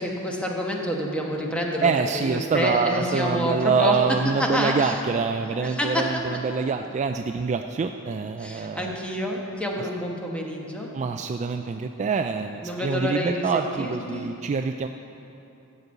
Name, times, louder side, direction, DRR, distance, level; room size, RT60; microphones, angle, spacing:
voice 1, 0.0-5.0 5.5-6.2 8.4-10.9 12.6-14.3, equal, 5° left, -1 dB, 1.2 m, -28 dB
voice 2, 1.8-9.0 10.9-14.9, right 5 dB, 30° right, 6 dB, 0.3 m, -25 dB
14.0 x 5.3 x 8.0 m, 2.8 s
head